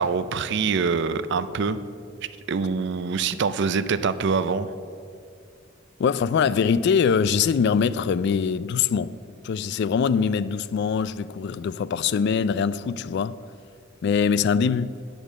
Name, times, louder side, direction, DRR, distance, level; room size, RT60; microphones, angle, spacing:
voice 1, 0.0-1.8 2.5-4.7, right 5 dB, 65° right, 0.5 m, -24 dB
voice 2, 6.0-9.2 9.4-13.4 14.0-15.0, left 6 dB, 60° left, 0.3 m, -23 dB
10.0 x 5.3 x 7.3 m
head